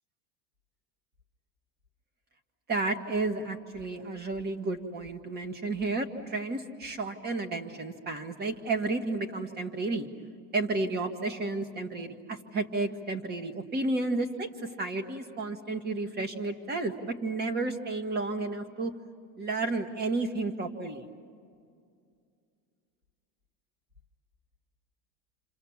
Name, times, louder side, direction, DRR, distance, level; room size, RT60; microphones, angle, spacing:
voice 1, 2.7-10.1 10.5-18.9 19.4-21.1, right 3 dB, 25° right, 8 dB, 1.8 m, -32 dB
29.5 x 26.5 x 7.3 m, 2.3 s
supercardioid pair, 145°, 37 cm